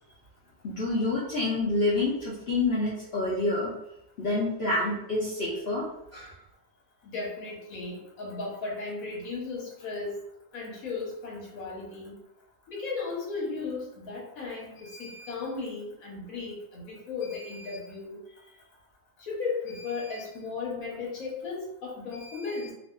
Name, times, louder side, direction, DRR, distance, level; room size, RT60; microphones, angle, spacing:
voice 1, 0.6-3.7 4.2-5.9 6.1-6.3, left 2 dB, 55° left, -7 dB, 0.8 m, -27 dB
voice 2, 7.0-10.2 10.5-12.1 12.7-18.2 19.2-22.7, left 4 dB, 80° left, -3 dB, 1.3 m, -35 dB
2.7 x 2.4 x 2.2 m, 0.80 s
omnidirectional pair, 1.5 m